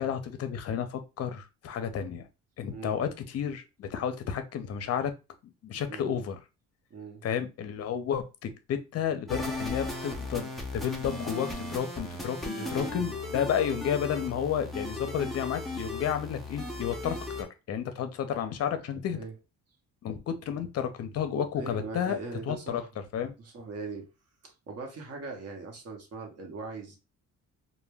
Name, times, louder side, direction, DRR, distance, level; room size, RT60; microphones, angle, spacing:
voice 1, 0.0-2.3 2.6-5.1 5.4-6.4 7.2-19.2 20.0-22.2 22.5-22.8 23.1-23.3, left 8 dB, 50° left, 9 dB, 0.5 m, -32 dB
voice 2, 2.7-3.0 5.9-6.2 6.9-7.2 12.6-13.1 19.1-19.3 21.6-22.9 23.4-24.1 24.4-27.0, right 4 dB, 50° right, 2 dB, 0.9 m, -40 dB
sound 1, 9.3-17.4, left 2 dB, ahead, 0.5 m, -36 dB
2.1 x 2.1 x 3.3 m, 0.28 s
cardioid pair, 105°, 31 cm